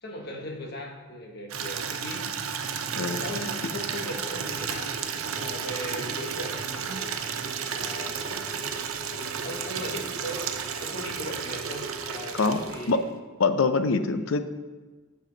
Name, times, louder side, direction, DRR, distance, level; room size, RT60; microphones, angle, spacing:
voice 1, 0.0-2.3 3.2-6.9 7.6-8.4 9.1-10.5 10.8-13.0 13.9-14.3, left 1 dB, 50° left, 1 dB, 1.3 m, -38 dB
Water tap faucet / Liquid, 1.5-13.1, right 6 dB, 85° right, 0.7 m, -33 dB
voice 2, 2.9-3.2 12.3-12.6 12.9-13.0 13.4-14.4, left 4 dB, 75° left, 10 dB, 0.5 m, -24 dB
sound 1, 4.2-12.9, right 1 dB, 65° right, 1.1 m, -45 dB
7.8 x 7.5 x 4.0 m, 1.3 s
head